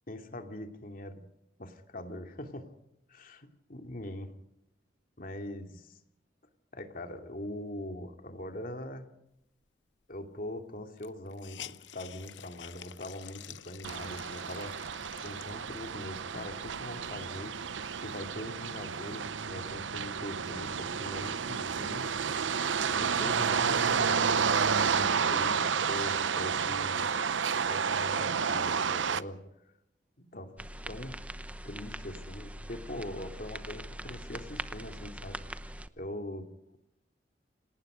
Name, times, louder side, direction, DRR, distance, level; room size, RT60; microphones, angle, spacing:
voice 1, 0.1-1.2 1.6-2.7 3.1-4.3 5.2-5.8 6.7-9.1 10.1-17.5 18.0-22.2 22.9-27.1 27.7-29.4 30.3-31.2 31.6-35.4 36.0-36.5, left 1 dB, 50° left, 5 dB, 2.8 m, -42 dB
Hiss, 10.1-10.2 10.4-10.5 11.0-16.0 16.6-16.7 17.0-18.4, left 11 dB, 80° left, 0.8 m, -49 dB
sound 1, 13.8-29.2, right 6 dB, 90° right, 0.8 m, -30 dB
sound 2, 30.6-35.9, right 1 dB, 10° right, 0.9 m, -42 dB
28.5 x 19.0 x 5.2 m, 0.81 s
head